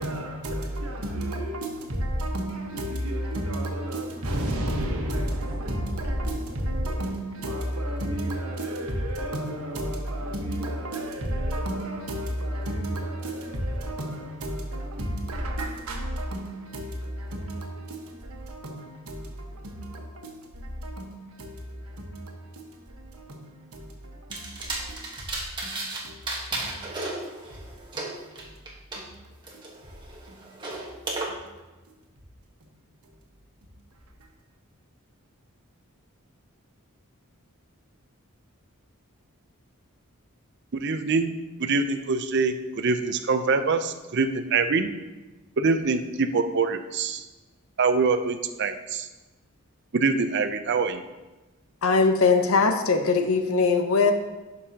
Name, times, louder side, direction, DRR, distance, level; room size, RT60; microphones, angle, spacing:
voice 1, 0.0-25.1 25.6-26.2 26.6-26.8 27.2-27.3 27.9-28.5 28.9-29.1 29.5-29.6 30.3-30.8 31.3-31.4 32.6-32.8 33.6-33.7, right 1 dB, 90° right, 1.3 m, -32 dB
sound 1, 24.3-26.0 26.3-29.0 29.4-31.3, right 2 dB, 20° right, 1.3 m, -34 dB
voice 2, 40.7-41.3 41.6-44.9 45.6-47.2 47.8-49.1 49.9-51.0, right 4 dB, 55° right, 0.5 m, -24 dB
voice 3, 51.8-54.1, left 4 dB, 75° left, 0.8 m, -21 dB
11.5 x 5.4 x 2.8 m
head